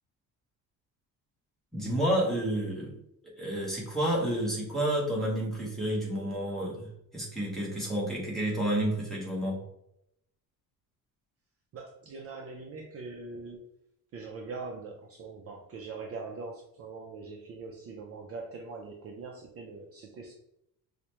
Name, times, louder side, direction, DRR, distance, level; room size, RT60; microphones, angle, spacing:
voice 1, 1.7-3.0 3.2-6.9 7.1-9.6, right 1 dB, ahead, -5 dB, 0.9 m, -30 dB
voice 2, 11.7-13.6 14.1-20.3, right 4 dB, 40° right, 1 dB, 0.4 m, -42 dB
4.8 x 2.1 x 2.9 m, 0.78 s
cardioid pair, 175°, 38 cm